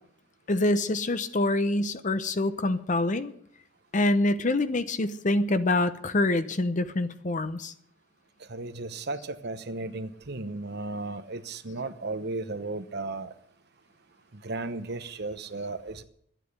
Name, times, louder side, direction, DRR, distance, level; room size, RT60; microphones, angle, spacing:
voice 1, 0.5-3.3 3.9-7.7, left 2 dB, 40° left, 0.8 m, -26 dB
voice 2, 8.5-13.3 14.3-16.0, right 2 dB, 55° right, 1.0 m, -35 dB
12.5 x 9.1 x 9.7 m
head